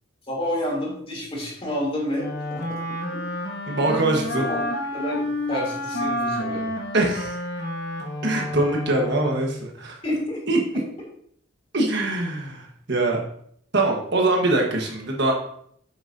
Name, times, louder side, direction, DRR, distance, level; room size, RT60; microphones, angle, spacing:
voice 1, 0.3-2.8 3.1-3.2 4.4-4.6 4.9-6.6 10.0-10.4 10.7-10.8, left 1 dB, 30° left, -3 dB, 2.9 m, -29 dB
Wind instrument woodwind instrument, 2.2-9.7, left 1 dB, 55° left, 1.1 m, -30 dB
voice 2, 3.7-4.4 6.9-7.4 8.2-10.0 10.5-10.8 11.7-13.2 13.7-15.3, right 2 dB, 60° right, 1 dB, 1.3 m, -23 dB
8.9 x 6.5 x 2.7 m, 0.65 s
head